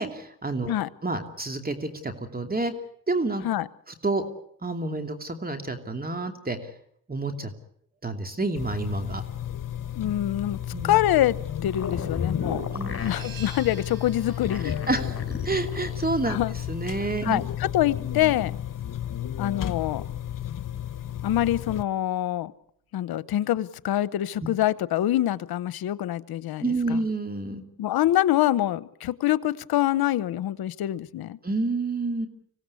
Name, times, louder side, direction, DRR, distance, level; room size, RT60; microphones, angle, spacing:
voice 1, 0.0-0.7 1.0-2.7 3.1-3.4 3.9-4.2 4.6-6.7 7.1-7.5 8.0-9.2 10.7-11.0 12.7-13.1 14.6-15.1 15.4-16.4 16.7-17.4 26.6-27.6 31.4-32.3, right 2 dB, 25° right, 2.8 m, -29 dB
sound 1, 8.6-21.8, left 10 dB, 60° left, 1.3 m, -33 dB
voice 2, 9.9-10.6 10.8-12.6 13.0-14.8 16.3-16.5 17.2-17.4 17.7-18.5 19.4-20.0 21.2-22.5 22.9-27.0 27.8-31.4, left 13 dB, 85° left, 0.9 m, -25 dB
sound 2, 11.7-13.3 14.2-16.0, left 5 dB, 40° left, 4.7 m, -34 dB
sound 3, 13.0-18.4, right 6 dB, 70° right, 5.7 m, -49 dB
25.5 x 17.0 x 8.4 m
cardioid pair, 70°, 36 cm